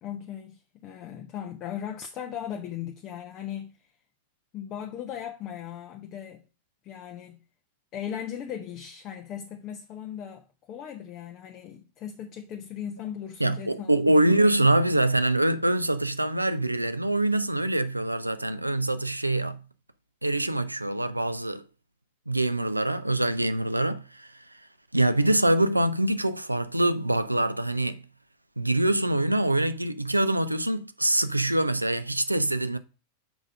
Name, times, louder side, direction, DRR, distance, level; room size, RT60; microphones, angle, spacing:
voice 1, 0.0-3.9 4.5-6.4 6.8-7.4 7.9-14.6, left 9 dB, 35° left, 0.9 m, -38 dB
voice 2, 13.4-19.6 20.2-21.6 22.3-24.6 24.9-28.0 28.6-32.8, right 1 dB, 85° right, 0.6 m, -24 dB
6.2 x 5.0 x 6.5 m
figure-of-eight pair, 90°, 0 cm